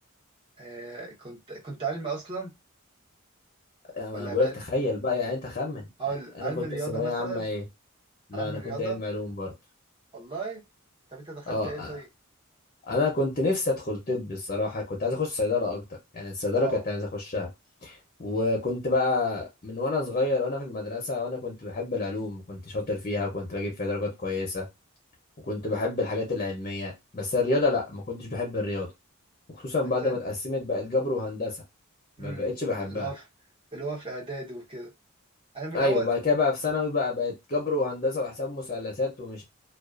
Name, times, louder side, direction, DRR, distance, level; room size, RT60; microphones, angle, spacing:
voice 1, 0.6-2.5 4.1-4.5 6.0-7.4 8.3-9.0 10.1-10.6 11.1-12.1 16.6-16.8 29.8-30.2 32.2-32.5 32.8-33.3 33.7-34.9 35.5-36.1, right 4 dB, 25° right, 0.8 m, -35 dB
voice 2, 3.9-5.9 6.4-7.6 8.3-9.5 11.5-11.9 12.9-15.8 16.1-17.5 17.8-24.7 25.4-28.9 29.5-31.6 32.2-33.1 35.7-39.4, left 3 dB, 35° left, 0.6 m, -28 dB
2.4 x 2.3 x 2.3 m
head